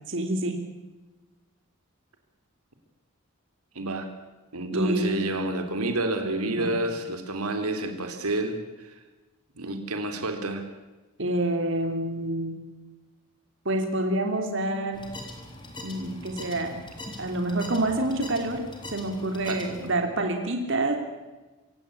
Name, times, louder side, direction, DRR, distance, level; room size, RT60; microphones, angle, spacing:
voice 1, 0.1-0.6 4.7-5.3 6.5-6.8 11.2-12.6 13.6-15.0 15.8-16.8 17.2-20.9, right 1 dB, 55° right, 4 dB, 3.2 m, -27 dB
voice 2, 3.7-4.1 4.5-8.9 9.6-10.7 19.4-19.6, right 2 dB, 90° right, 6 dB, 3.4 m, -29 dB
sound 1, 14.9-19.9, left 1 dB, 20° left, 3.7 m, -42 dB
26.5 x 16.5 x 8.6 m, 1.2 s
head